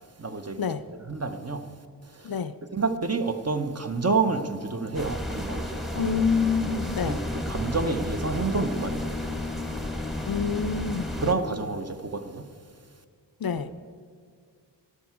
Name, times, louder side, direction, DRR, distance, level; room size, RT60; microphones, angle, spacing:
voice 1, 0.2-0.6 1.1-1.8 2.1-2.3 2.7-6.1 7.0-9.3 11.2-12.6 13.6-13.7, right 4 dB, 35° right, 0.8 m, -29 dB
sound 1, 4.9-11.3, left 1 dB, ahead, 1.0 m, -32 dB
voice 2, 5.9-7.2 10.3-11.1 13.4-13.7, left 6 dB, 55° left, 0.5 m, -27 dB
13.0 x 11.5 x 4.6 m
wide cardioid pair, 80°, 44 cm